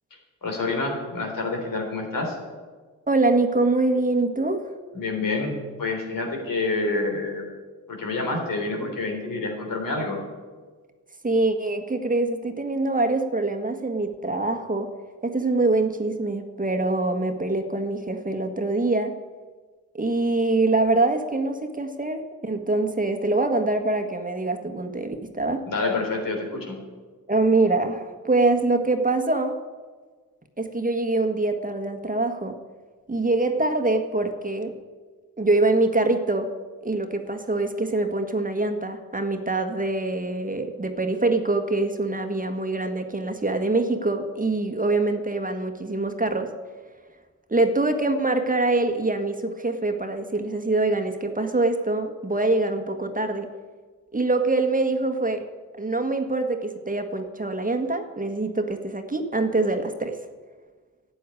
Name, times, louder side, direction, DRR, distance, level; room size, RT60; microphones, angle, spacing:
voice 1, 0.4-2.4 4.9-7.4 7.9-10.2 25.7-26.8, left 3 dB, 70° left, 2 dB, 3.7 m, -28 dB
voice 2, 3.1-4.7 11.2-14.9 15.2-19.1 19.9-25.6 27.3-29.6 30.6-32.6 33.1-34.7 35.4-36.5 36.8-46.5 47.5-53.5 54.1-55.5 55.7-60.2, right 2 dB, 25° right, 6 dB, 1.6 m, -24 dB
11.5 x 8.0 x 9.7 m, 1.4 s
cardioid pair, 50°, 34 cm